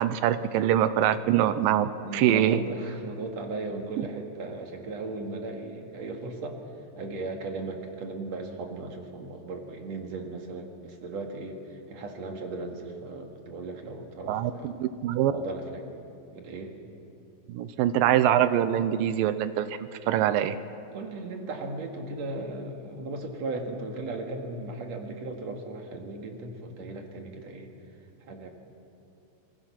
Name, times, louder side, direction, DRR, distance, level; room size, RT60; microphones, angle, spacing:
voice 1, 0.0-2.6 14.3-15.3 17.5-19.7 20.1-20.6, right 11 dB, 90° right, 13 dB, 2.5 m, -24 dB
voice 2, 2.0-6.6 7.0-14.7 15.3-15.9 16.3-16.8 20.9-27.7 28.2-28.5, right 2 dB, 55° right, 3 dB, 2.8 m, -37 dB
27.0 x 20.5 x 5.9 m, 2.7 s
omnidirectional pair, 4.0 m